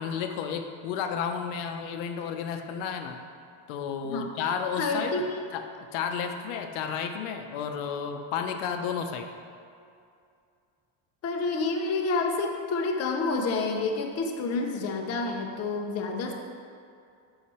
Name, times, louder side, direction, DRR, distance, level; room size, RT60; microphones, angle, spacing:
voice 1, 0.0-3.2 3.7-5.1 5.5-9.3, left 7 dB, 80° left, 5 dB, 0.8 m, -32 dB
voice 2, 4.8-5.4 11.2-16.4, left 3 dB, 30° left, 2 dB, 0.6 m, -29 dB
7.7 x 5.8 x 4.2 m, 2.4 s
cardioid pair, 165°, 48 cm